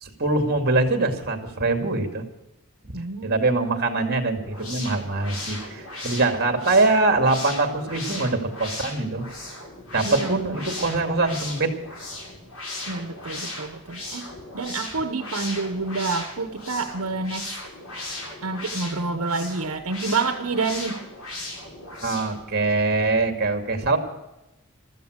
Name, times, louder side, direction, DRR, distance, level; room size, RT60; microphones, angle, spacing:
voice 1, 0.0-2.2 2.8-2.9 3.2-9.3 9.9-11.7 22.0-24.0, right 3 dB, 45° right, 6 dB, 2.3 m, -23 dB
voice 2, 2.9-3.5 10.0-10.4 12.9-14.3 14.5-17.6 18.4-21.0, right 3 dB, 75° right, 8 dB, 1.0 m, -28 dB
sound 1, 4.4-22.4, left 2 dB, 75° left, 7.4 m, -37 dB
15.0 x 13.5 x 6.4 m, 0.94 s
head